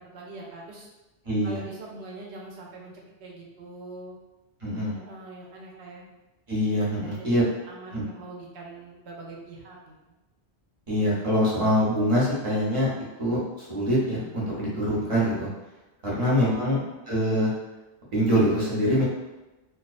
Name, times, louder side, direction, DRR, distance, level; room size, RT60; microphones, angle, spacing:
voice 1, 0.1-0.9 1.4-2.9 3.2-4.2 4.9-6.0 7.0-9.9 16.2-17.0, right 2 dB, 80° right, -2 dB, 0.9 m, -43 dB
voice 2, 1.2-1.6 4.6-5.0 6.5-7.4 7.9-8.0 10.9-12.9 13.2-15.5 16.0-16.8 17.1-17.5 18.1-19.0, equal, 35° right, -6 dB, 0.7 m, -24 dB
2.3 x 2.2 x 2.4 m, 1.1 s
omnidirectional pair, 1.1 m